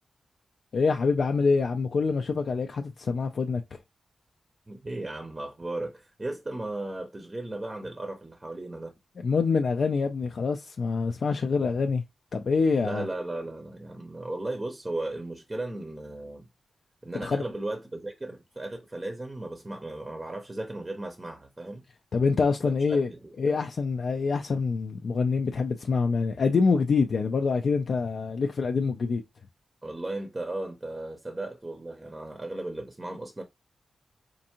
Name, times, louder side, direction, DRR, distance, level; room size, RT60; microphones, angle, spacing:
voice 1, 0.7-3.6 9.2-12.0 12.3-13.1 17.2-17.4 22.1-23.1 23.4-29.2, left 4 dB, 60° left, 0.4 m, -25 dB
voice 2, 4.7-8.9 12.8-16.5 17.0-21.8 22.6-23.7 29.8-33.4, right 2 dB, 20° right, 0.6 m, -36 dB
4.4 x 2.5 x 2.8 m
cardioid pair, 90°, 0 cm